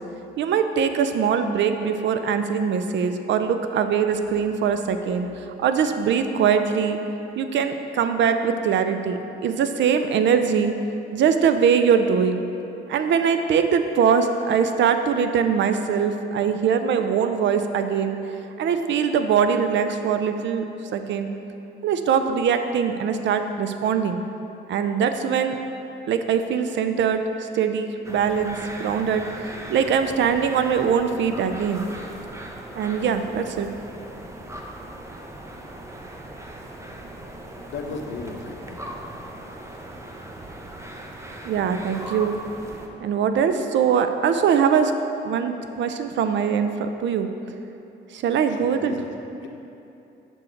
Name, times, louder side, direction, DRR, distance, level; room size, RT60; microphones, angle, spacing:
voice 1, 0.4-7.0 7.4-10.7 11.1-12.4 12.9-18.2 18.6-21.3 21.8-24.2 24.7-25.6 26.1-31.9 32.7-33.7 41.4-42.4 43.0-44.9 45.2-47.3 48.1-49.0, right 7 dB, 65° right, 8 dB, 0.5 m, -22 dB
sound 1, 28.0-42.9, right 1 dB, 15° right, 0.7 m, -39 dB
voice 2, 37.6-38.9 48.5-49.1 49.4-49.5, left 3 dB, 70° left, 3 dB, 0.9 m, -35 dB
6.2 x 6.2 x 4.5 m, 2.8 s
cardioid pair, 90°, 20 cm